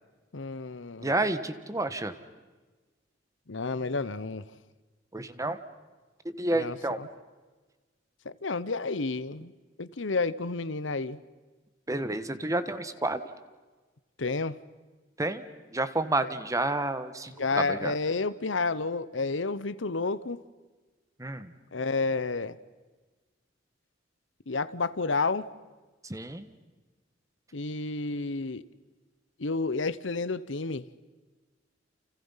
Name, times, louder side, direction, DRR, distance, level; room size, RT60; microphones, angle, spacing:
voice 1, 0.3-1.2 3.5-4.5 6.5-7.1 8.2-9.5 9.8-11.2 14.2-14.6 17.4-20.4 21.7-22.6 24.5-25.5 27.5-28.6 29.4-30.9, left 3 dB, 75° left, 0.9 m, -30 dB
voice 2, 1.0-2.1 5.1-5.6 6.2-7.0 11.9-13.2 15.2-15.5 15.7-17.9 21.2-21.5 26.0-26.5, right 2 dB, 15° right, 1.4 m, -30 dB
30.0 x 29.5 x 5.7 m
head